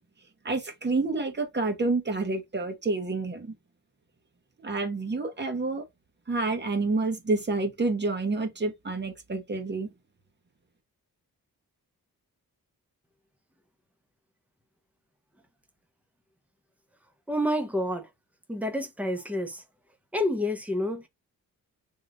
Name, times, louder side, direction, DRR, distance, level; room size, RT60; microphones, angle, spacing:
voice 1, 0.4-3.5 4.6-5.8 6.3-9.9, right 3 dB, 30° right, 1.0 m, -28 dB
voice 2, 17.3-18.1 18.5-19.6 20.1-21.1, left 1 dB, 5° right, 0.8 m, -28 dB
3.8 x 3.0 x 2.5 m
wide cardioid pair, 110°, 37 cm